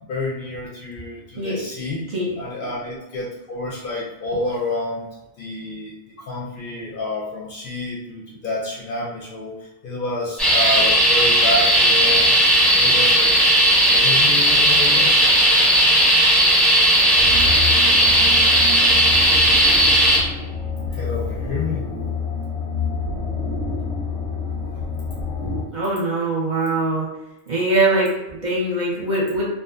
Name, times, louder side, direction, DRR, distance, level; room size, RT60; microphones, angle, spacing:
voice 1, 0.0-2.0 2.4-5.1 5.4-13.3 13.9-15.3 20.9-21.8, left 2 dB, 55° left, -4 dB, 0.7 m, -29 dB
sound 1, 10.4-20.2, right 1 dB, ahead, 0.8 m, -15 dB
sound 2, 17.1-25.6, left 4 dB, 85° left, 0.9 m, -28 dB
voice 2, 25.7-27.1 27.5-29.5, right 2 dB, 45° right, -5 dB, 0.8 m, -22 dB
2.5 x 2.5 x 2.5 m, 0.97 s
omnidirectional pair, 1.2 m